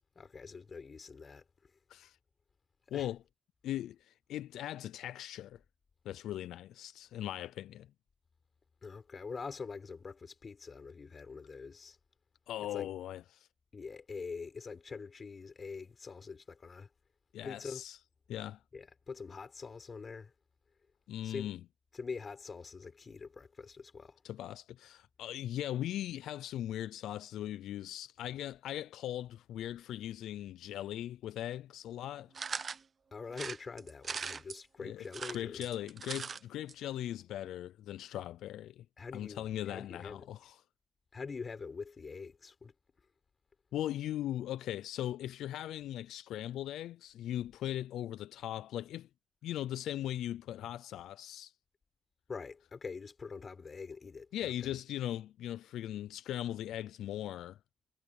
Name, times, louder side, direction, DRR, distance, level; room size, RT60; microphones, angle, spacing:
voice 1, 0.1-1.4 2.9-3.1 8.8-12.0 12.7-12.9 13.7-16.9 17.4-17.8 18.7-20.3 21.2-21.5 21.9-24.2 33.1-35.6 39.0-40.3 41.1-42.7 52.3-54.3, left 5 dB, 35° left, 6.8 m, -44 dB
voice 2, 3.6-5.6 6.1-7.9 12.5-13.5 17.3-18.0 18.3-18.6 21.1-21.6 24.2-32.4 34.8-35.0 35.3-38.8 39.1-40.6 43.7-49.1 49.4-51.5 54.3-57.6, left 12 dB, 80° left, 0.4 m, -39 dB
sound 1, 32.3-32.8 33.3-34.6 35.0-36.4 36.7-36.8 37.0-37.1, right 5 dB, 40° right, 0.8 m, -40 dB
cardioid pair, 90°, 0 cm